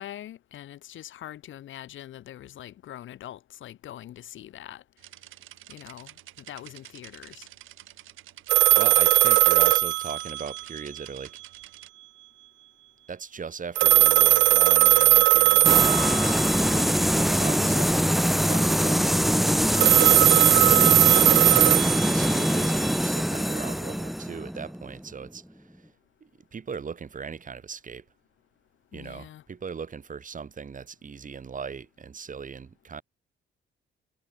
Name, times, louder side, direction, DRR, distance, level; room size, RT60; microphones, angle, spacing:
voice 1, 0.0-4.8 5.7-7.5 28.9-29.4, left 12 dB, 75° left, 6.5 m, -43 dB
sound 1, 5.0-11.9, right 15 dB, 85° right, 6.4 m, -49 dB
sound 2, 8.5-10.8 13.8-16.6 19.8-22.7, right 16 dB, 70° right, 0.4 m, -19 dB
voice 2, 8.8-11.4 13.1-16.9 17.3-19.2 19.8-20.8 22.1-25.4 26.2-28.0 28.9-33.0, right 6 dB, 40° right, 7.6 m, -38 dB
sound 3, 15.6-25.3, equal, ahead, 0.7 m, -23 dB
cardioid pair, 90°, 20 cm